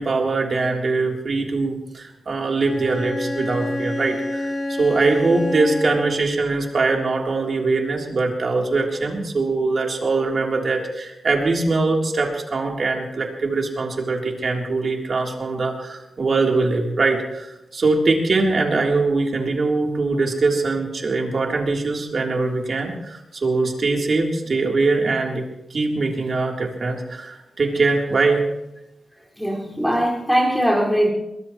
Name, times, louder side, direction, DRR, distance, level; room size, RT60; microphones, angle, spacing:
voice 1, 0.0-25.4 25.7-28.5, right 3 dB, 55° right, 0 dB, 3.4 m, -22 dB
Bowed string instrument, 2.6-6.4, left 1 dB, 50° left, 4.0 m, -28 dB
voice 2, 29.4-31.1, equal, 5° left, -2 dB, 5.3 m, -20 dB
22.5 x 20.5 x 3.1 m, 0.91 s
wide cardioid pair, 105°, 0 cm